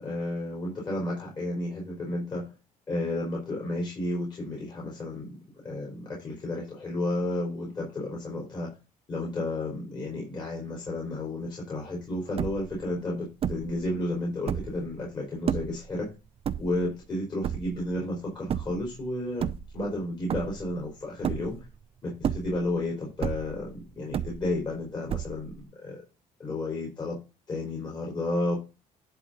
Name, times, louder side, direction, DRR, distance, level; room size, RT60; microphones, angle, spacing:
voice 1, 0.0-2.4 2.9-5.3 5.6-8.7 9.1-16.1 16.6-21.6 22.0-26.0 26.4-27.2 27.5-28.6, left 1 dB, 30° left, -2 dB, 4.1 m, -32 dB
sound 1, 11.9-12.0 12.2-12.8 13.4-13.8 14.3-14.9 15.5-15.9 16.4-17.0 17.4-17.9 18.5-18.9 19.3-20.0 20.3-20.8 21.2-21.8 22.1-22.8 23.2-23.7 24.1-24.7 25.1-25.6, right 9 dB, 45° right, 0.7 m, -31 dB
11.0 x 3.9 x 5.3 m, 0.31 s
cardioid pair, 125°, 14 cm